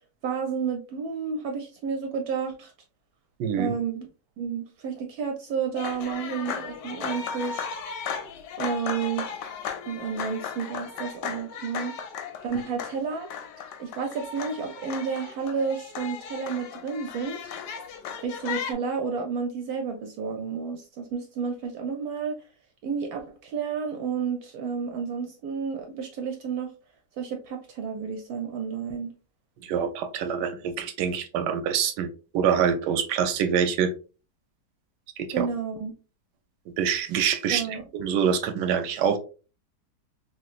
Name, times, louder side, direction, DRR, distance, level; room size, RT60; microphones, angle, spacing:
voice 1, 0.2-2.7 3.6-4.1 4.4-7.7 8.6-9.3 9.8-11.9 12.4-13.3 13.8-17.5 18.2-22.4 22.8-26.7 27.2-29.1 35.3-35.9 37.5-37.9, right 6 dB, 70° right, 4 dB, 0.9 m, -31 dB
voice 2, 3.4-3.7 29.6-32.1 32.3-33.9 35.2-35.5 36.8-37.6 37.9-39.2, right 7 dB, 85° right, 9 dB, 1.2 m, -25 dB
sound 1, 5.7-18.7, left 7 dB, 90° left, 1.2 m, -36 dB
3.1 x 2.9 x 2.4 m, 0.34 s
omnidirectional pair, 1.8 m